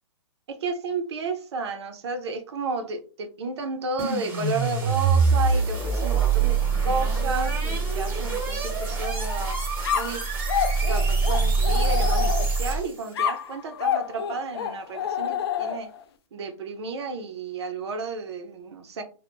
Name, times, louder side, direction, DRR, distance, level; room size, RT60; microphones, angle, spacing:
voice 1, 0.5-6.6 6.8-9.6 9.9-10.2 10.8-15.9 16.3-19.0, right 3 dB, 65° right, 0.7 m, -32 dB
sound 1, 4.0-13.1, right 4 dB, 15° right, 1.0 m, -24 dB
sound 2, 9.8-12.7 13.2-16.0, left 9 dB, 55° left, 0.4 m, -28 dB
2.2 x 2.2 x 3.1 m
hypercardioid pair, 145°, 15 cm